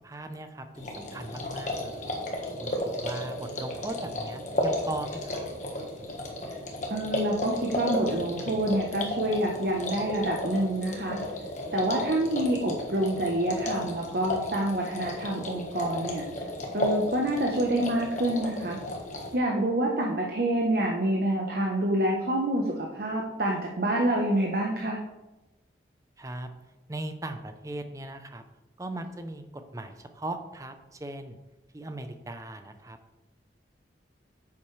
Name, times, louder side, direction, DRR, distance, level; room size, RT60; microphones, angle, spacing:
voice 1, 0.0-2.1 2.6-5.5 26.2-26.5 26.9-28.4 28.8-31.4 31.7-33.0, right 1 dB, 20° right, 8 dB, 0.6 m, -38 dB
sound 1, 0.8-19.4, left 1 dB, 45° left, 1.4 m, -34 dB
voice 2, 6.9-11.2 11.7-16.2 16.7-18.8 19.3-25.0, right 1 dB, 55° right, -1 dB, 1.0 m, -27 dB
9.2 x 7.1 x 3.3 m, 1.0 s
head